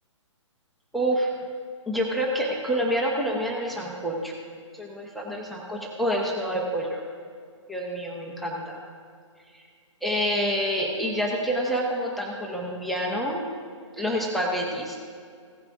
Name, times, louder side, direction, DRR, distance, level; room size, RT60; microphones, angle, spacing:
voice 1, 0.9-1.3 1.9-4.3 4.7-7.0 7.7-8.8 10.0-13.5 14.0-15.0, equal, ahead, -2 dB, 0.9 m, -27 dB
16.5 x 9.3 x 2.5 m, 2.2 s
figure-of-eight pair, 130°, 16 cm